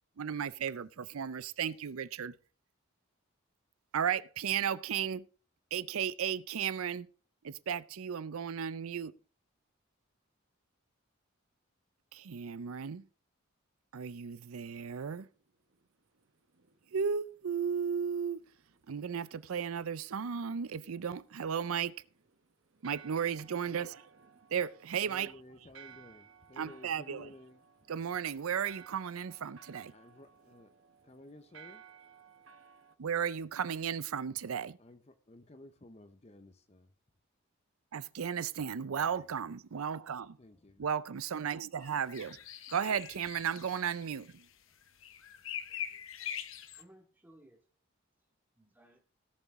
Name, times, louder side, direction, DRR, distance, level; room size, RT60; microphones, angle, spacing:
voice 1, 0.2-2.3 3.9-5.3 5.7-7.1 7.4-9.1 12.1-13.1 13.9-15.3 16.9-18.4 18.9-21.9 22.8-24.0 24.5-25.3 26.6-27.3 27.9-29.9 33.0-34.8 37.9-40.4 40.8-42.4 42.7-44.4, right 7 dB, 90° right, 0.5 m, -35 dB
sound 1, 15.3-33.0, right 7 dB, 70° right, 1.0 m, -59 dB
voice 2, 25.1-27.6 29.9-30.7 31.0-31.8 34.8-36.9 38.8-39.3 40.4-40.9, left 1 dB, 30° left, 0.7 m, -55 dB
sound 2, 41.8-44.5 44.8-46.8, left 9 dB, 75° left, 1.1 m, -43 dB
voice 3, 45.7-46.4 46.7-47.7 48.6-49.0, right 1 dB, 10° right, 2.2 m, -62 dB
17.5 x 7.0 x 3.6 m
head